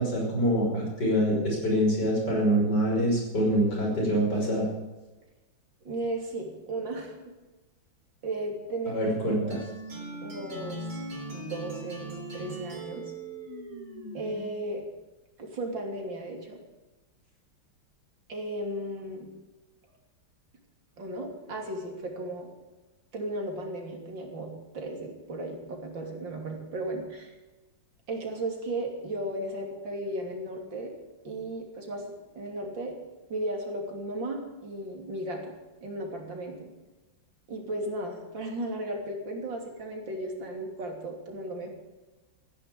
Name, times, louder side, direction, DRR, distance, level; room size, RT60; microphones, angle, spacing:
voice 1, 0.0-4.6 8.9-9.6, equal, 60° left, -2 dB, 6.3 m, -25 dB
voice 2, 5.8-7.2 8.2-9.0 9.3-9.6 10.2-10.9 11.3-13.0 14.1-14.8 15.4-16.6 18.3-19.3 21.0-22.5 23.1-27.3 28.1-30.9 31.2-33.0 33.3-35.5 35.8-36.7 37.5-41.7, right 1 dB, 70° right, 1 dB, 3.8 m, -35 dB
sound 1, 9.5-14.6, right 1 dB, 50° right, 4.1 m, -40 dB
15.5 x 10.5 x 8.4 m, 1.1 s
omnidirectional pair, 2.1 m